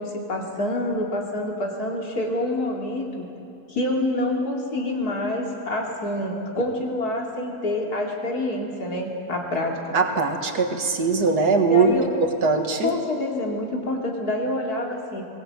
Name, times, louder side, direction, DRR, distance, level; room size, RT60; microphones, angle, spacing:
voice 1, 0.0-3.2 3.7-9.8 11.7-12.2 12.8-15.2, left 1 dB, 75° left, 0 dB, 3.4 m, -27 dB
voice 2, 9.9-11.9 12.2-12.9, right 4 dB, 90° right, 4 dB, 2.3 m, -21 dB
22.0 x 19.0 x 8.8 m, 2.6 s
omnidirectional pair, 1.6 m